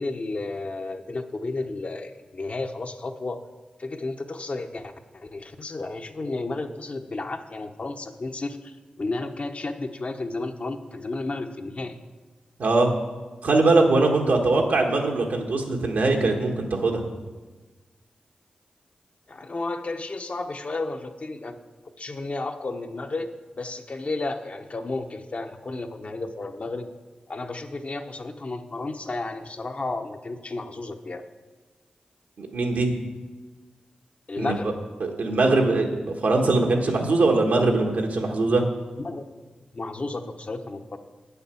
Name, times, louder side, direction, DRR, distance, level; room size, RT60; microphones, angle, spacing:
voice 1, 0.0-3.4 3.8-12.0 19.3-21.6 22.0-23.3 23.6-26.9 27.3-31.2 34.3-34.7 39.0-39.2 39.7-41.0, left 2 dB, 50° left, 6 dB, 0.9 m, -32 dB
voice 2, 12.6-12.9 13.4-17.0 32.4-32.9 34.4-34.5 35.0-38.6, right 3 dB, 85° right, 1 dB, 1.5 m, -21 dB
8.8 x 6.8 x 7.0 m, 1.3 s
cardioid pair, 50°, 3 cm